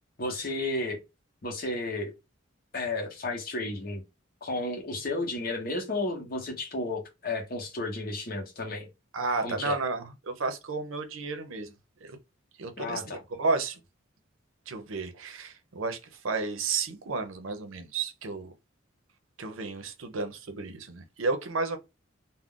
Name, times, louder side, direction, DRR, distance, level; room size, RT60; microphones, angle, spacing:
voice 1, 0.2-1.0 1.4-2.1 2.7-4.0 4.4-8.9 9.4-9.8 12.8-13.2, left 2 dB, 45° left, 0.8 m, -32 dB
voice 2, 9.1-11.7 12.0-12.2 12.6-13.8 14.7-18.5 19.4-21.8, right 4 dB, 75° right, 0.6 m, -32 dB
2.4 x 2.1 x 3.6 m
head